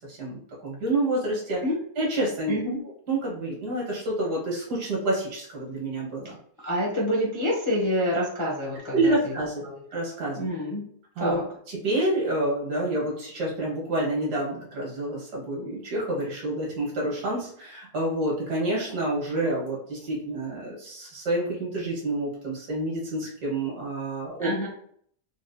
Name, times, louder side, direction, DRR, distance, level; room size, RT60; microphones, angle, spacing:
voice 1, 0.1-1.6 2.0-2.6 3.1-6.4 8.9-9.6 9.9-10.5 11.2-11.4 11.8-24.5, right 1 dB, 85° right, -3 dB, 1.9 m, -28 dB
voice 2, 2.5-2.8 6.6-9.3 9.6-9.8 10.3-10.9 11.2-11.5 24.4-24.7, equal, 40° left, -4 dB, 0.4 m, -27 dB
4.0 x 2.2 x 2.6 m, 0.62 s
omnidirectional pair, 1.7 m